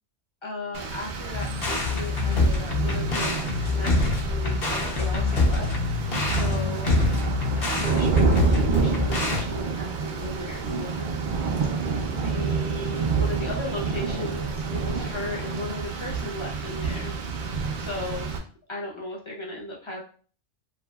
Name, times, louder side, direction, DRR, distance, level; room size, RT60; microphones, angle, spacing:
voice 1, 0.4-6.9 7.6-11.1 12.1-17.1 17.8-18.3 18.7-20.0, left 1 dB, 30° left, -3 dB, 0.6 m, -36 dB
Rain, 0.7-18.4, right 5 dB, 55° right, 0.5 m, -28 dB
sound 1, 1.3-9.4, left 3 dB, 60° left, 0.8 m, -25 dB
2.9 x 2.7 x 2.2 m, 0.41 s
omnidirectional pair, 1.2 m